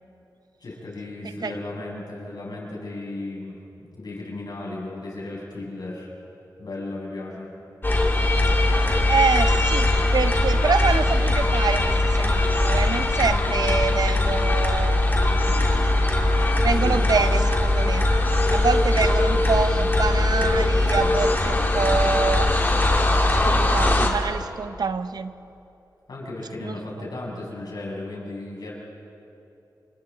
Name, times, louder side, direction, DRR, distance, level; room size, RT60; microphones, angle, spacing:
voice 1, 0.6-3.6 3.9-6.1 6.6-7.5 8.7-9.0 16.8-17.0 18.9-19.1 26.1-28.7, left 2 dB, 75° left, -4 dB, 7.0 m, -35 dB
sound 1, 7.8-24.1, left 2 dB, 30° left, 2.8 m, -20 dB
voice 2, 9.1-15.1 16.6-18.1 18.5-22.6 23.3-25.3 26.6-27.1, right 5 dB, 70° right, 11 dB, 0.8 m, -26 dB
29.0 x 25.5 x 4.2 m, 2.8 s
cardioid pair, 65°, 7 cm